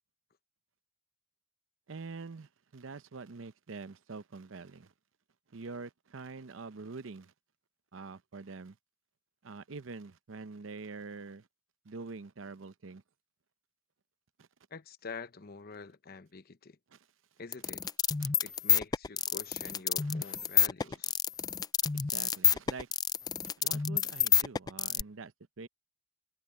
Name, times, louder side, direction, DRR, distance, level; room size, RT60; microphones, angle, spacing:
voice 1, 1.9-4.9 5.5-7.3 7.9-8.8 9.4-11.5 11.8-13.0 14.4-14.5 16.9-17.0 18.2-18.3 20.0-20.4 20.8-21.0 21.9-22.9 23.6-25.7, right 4 dB, 85° right, 0.7 m, -45 dB
voice 2, 14.7-16.8 17.4-17.8 18.4-21.1, left 4 dB, 50° left, 0.9 m, -46 dB
sound 1, 17.5-25.0, left 7 dB, 20° left, 0.3 m, -28 dB
head